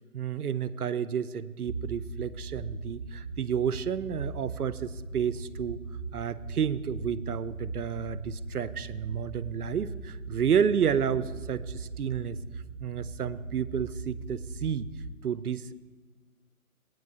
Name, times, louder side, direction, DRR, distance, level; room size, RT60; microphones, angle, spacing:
voice 1, 0.1-5.8 6.1-12.4 12.8-14.9 15.2-15.7, right 8 dB, 75° right, 16 dB, 0.6 m, -30 dB
sound 1, 1.7-15.1, right 3 dB, 35° right, 1.0 m, -39 dB
17.0 x 9.1 x 2.4 m, 1.4 s
figure-of-eight pair, 150°, 45 cm